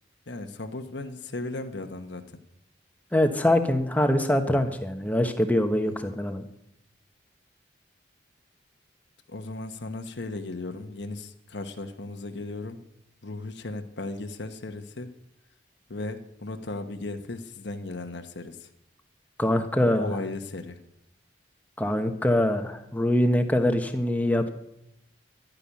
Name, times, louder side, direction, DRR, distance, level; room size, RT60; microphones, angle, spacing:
voice 1, 0.3-2.2 5.8-6.1 9.3-12.8 13.2-15.1 15.9-18.7 19.8-20.8, left 2 dB, 65° left, 6 dB, 1.1 m, -36 dB
voice 2, 3.1-6.4 19.4-20.1 21.8-24.5, left 1 dB, 10° left, 6 dB, 1.2 m, -24 dB
12.0 x 10.0 x 9.9 m, 0.81 s
head